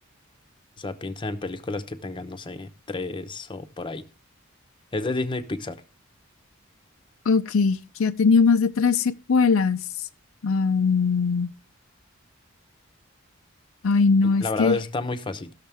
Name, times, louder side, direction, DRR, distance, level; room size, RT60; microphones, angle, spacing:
voice 1, 0.8-4.1 4.9-5.8 14.2-15.5, left 2 dB, 25° left, 0.8 m, -31 dB
voice 2, 7.3-9.8 10.4-11.5 13.8-14.8, left 4 dB, 75° left, 0.5 m, -20 dB
17.0 x 6.5 x 3.4 m
head